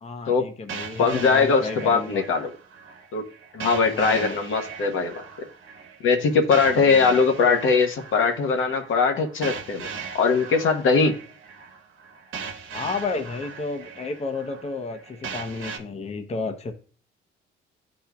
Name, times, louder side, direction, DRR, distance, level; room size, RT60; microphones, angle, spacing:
voice 1, 0.0-2.2 3.9-4.4 6.7-7.2 12.7-16.7, left 4 dB, 30° left, 6 dB, 0.7 m, -32 dB
sound 1, 0.7-15.8, right 5 dB, 75° right, 1.1 m, -39 dB
voice 2, 1.0-2.5 3.1-3.2 3.5-5.5 6.0-9.9 10.1-11.1, left 5 dB, 75° left, 4 dB, 1.1 m, -21 dB
11.5 x 4.3 x 2.3 m, 0.41 s
cardioid pair, 105°, 21 cm